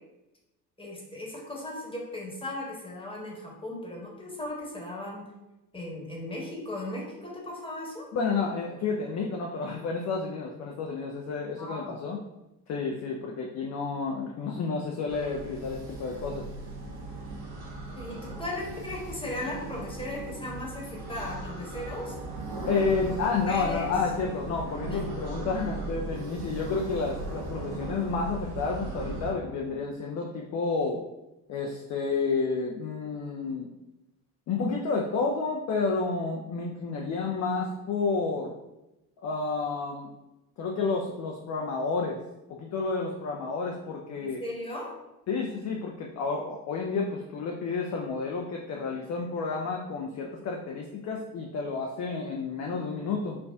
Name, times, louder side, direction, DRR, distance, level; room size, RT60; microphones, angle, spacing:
voice 1, 0.8-5.3 5.7-8.1 11.6-12.0 17.9-22.2 22.7-23.2 23.4-23.9 24.9-25.0 25.4-25.5 44.2-44.9, left 1 dB, 10° left, -3 dB, 1.1 m, -37 dB
voice 2, 8.1-12.2 12.7-16.4 22.7-31.0 31.5-33.7 34.5-38.5 39.2-40.1 40.6-42.2 42.5-44.4 45.3-53.4, left 4 dB, 35° left, 0 dB, 0.5 m, -30 dB
sound 1, 15.1-29.3, right 2 dB, 50° right, 0.9 m, -38 dB
4.4 x 2.4 x 2.3 m, 0.95 s
figure-of-eight pair, 50°, 49 cm